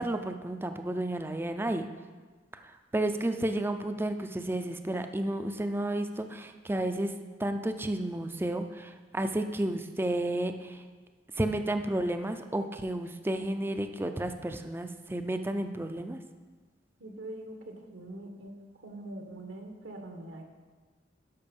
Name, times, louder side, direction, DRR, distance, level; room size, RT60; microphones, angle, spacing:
voice 1, 0.0-1.9 2.9-7.1 7.4-10.8 11.4-16.2, right 1 dB, 10° right, 7 dB, 0.5 m, -32 dB
voice 2, 17.0-18.5 18.8-20.4, right 1 dB, 80° right, 3 dB, 1.4 m, -43 dB
12.5 x 5.8 x 5.3 m, 1.4 s
head